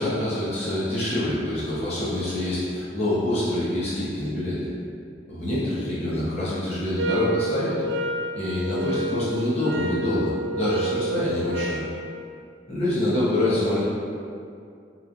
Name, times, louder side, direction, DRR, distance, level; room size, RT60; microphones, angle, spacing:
voice 1, 0.0-4.7 5.3-7.8 8.3-11.8 12.7-13.8, left 1 dB, 35° left, -10 dB, 1.0 m, -26 dB
sound 1, 7.0-11.9, right 1 dB, 80° right, 0.3 m, -29 dB
3.7 x 3.1 x 2.6 m, 2.4 s
head